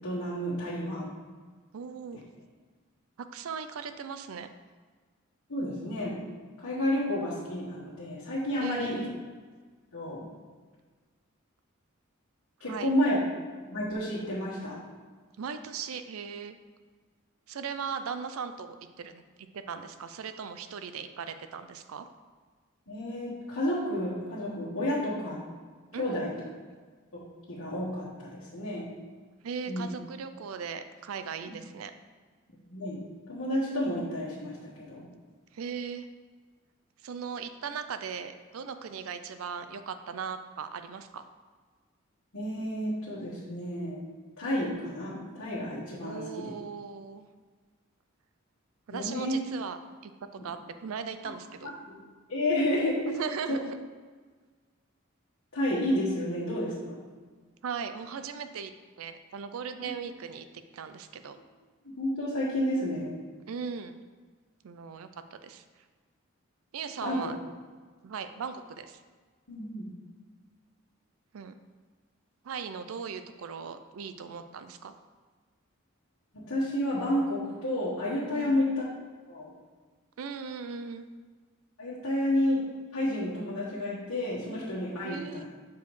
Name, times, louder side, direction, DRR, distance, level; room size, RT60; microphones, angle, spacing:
voice 1, 0.0-1.1 2.1-2.2 5.5-6.2 6.6-9.0 9.9-10.3 12.6-13.2 13.6-14.8 22.9-25.4 26.0-26.3 27.1-28.9 29.7-29.9 31.4-31.6 32.7-33.0 33.3-35.1 42.3-44.0 44.4-46.5 48.9-49.4 50.4-50.5 51.6-52.0 52.3-53.1 55.5-57.0 59.8-59.9 61.8-63.2 67.0-67.3 69.5-69.9 76.3-78.8 79.3-79.5 81.8-82.7 82.9-85.4, left 1 dB, 90° left, -9 dB, 1.4 m, -31 dB
voice 2, 1.7-2.2 3.3-4.5 8.6-9.1 12.7-12.9 15.4-16.6 17.5-19.2 19.5-22.1 25.9-26.5 29.4-31.9 35.5-36.1 37.0-41.2 46.0-47.3 48.9-49.8 50.0-50.1 50.4-51.7 53.1-53.8 57.6-58.7 59.0-60.5 60.7-61.4 63.5-64.0 64.6-65.6 66.7-67.4 68.0-69.0 71.3-71.5 72.4-74.9 78.3-78.6 80.2-81.1 85.0-85.4, right 6 dB, 85° right, 10 dB, 0.4 m, -38 dB
7.0 x 4.6 x 3.2 m, 1.5 s
head